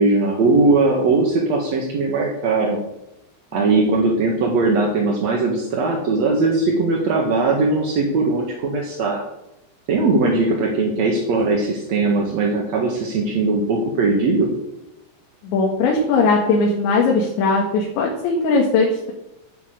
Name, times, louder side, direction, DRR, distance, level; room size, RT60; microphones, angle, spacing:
voice 1, 0.0-2.8 3.5-9.2 9.9-14.5, right 3 dB, 55° right, 0 dB, 2.1 m, -19 dB
voice 2, 15.4-19.1, left 3 dB, 75° left, -1 dB, 4.1 m, -19 dB
11.0 x 9.5 x 7.9 m, 0.89 s
omnidirectional pair, 5.3 m